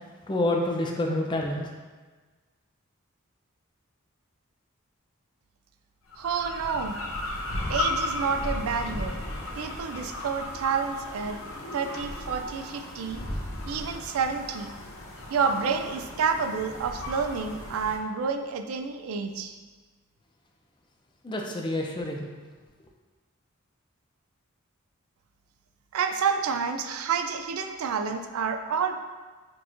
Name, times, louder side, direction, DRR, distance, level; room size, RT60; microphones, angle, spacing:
voice 1, 0.3-1.7 21.2-22.3, left 1 dB, 20° left, 1 dB, 0.4 m, -28 dB
sound 1, 6.1-18.0, left 1 dB, 65° left, 0.6 m, -35 dB
voice 2, 6.2-7.0 7.7-9.2 9.6-11.4 11.7-13.2 13.7-14.7 15.3-19.6 25.9-28.9, right 6 dB, 80° right, 7 dB, 0.4 m, -29 dB
6.0 x 2.9 x 2.5 m, 1.3 s
head